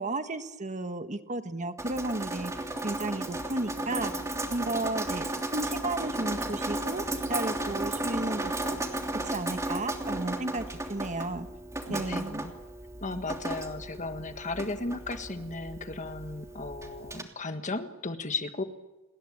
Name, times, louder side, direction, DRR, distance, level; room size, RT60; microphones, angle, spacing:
voice 1, 0.0-2.5 2.8-4.1 4.5-5.3 5.5-8.8 9.2-11.5 11.9-12.4, right 2 dB, 35° right, 9 dB, 1.4 m, -33 dB
Drip, 1.8-17.2, right 1 dB, 15° right, 3.0 m, -34 dB
voice 2, 11.9-12.5 13.0-18.6, left 3 dB, 35° left, 8 dB, 1.6 m, -35 dB
29.5 x 21.0 x 8.6 m, 1.1 s
head